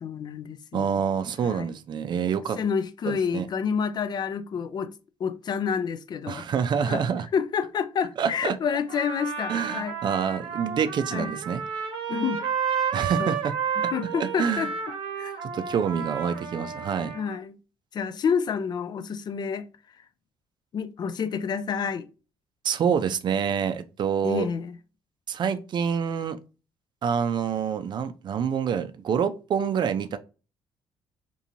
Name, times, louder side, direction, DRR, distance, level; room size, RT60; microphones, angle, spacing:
voice 1, 0.0-1.0 1.4-1.7 2.6-4.9 5.2-6.4 6.8-7.0 7.3-10.0 11.1-11.3 12.1-12.4 13.2-13.4 13.8-15.4 17.1-17.6 17.9-19.7 20.7-22.1 24.2-24.8, left 6 dB, 45° left, 0.4 m, -29 dB
voice 2, 0.7-2.6 3.1-3.4 6.3-7.3 8.2-8.6 9.5-11.6 12.9-13.5 14.2-14.7 15.4-17.1 22.6-24.5 25.3-26.4 27.0-30.2, right 7 dB, 50° right, 0.4 m, -27 dB
Trumpet, 8.9-17.4, right 7 dB, 80° right, 0.8 m, -31 dB
2.9 x 2.6 x 2.5 m
supercardioid pair, 75°, 10 cm